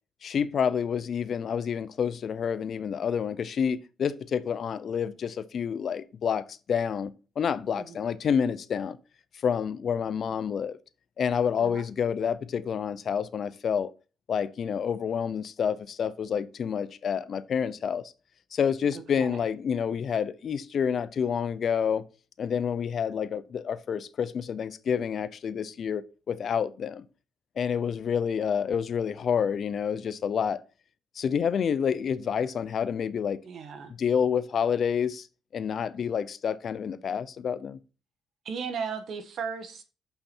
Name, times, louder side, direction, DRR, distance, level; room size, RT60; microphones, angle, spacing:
voice 1, 0.2-9.0 9.4-10.8 11.2-13.9 14.3-18.0 18.5-22.0 22.4-27.0 27.6-30.6 31.2-33.4 34.0-35.3 35.5-37.8, left 7 dB, 55° left, 0.6 m, -28 dB
voice 2, 19.1-19.5 33.4-33.9 38.4-39.8, right 6 dB, 65° right, 1.2 m, -36 dB
6.9 x 5.7 x 4.4 m
cardioid pair, 90°, 0 cm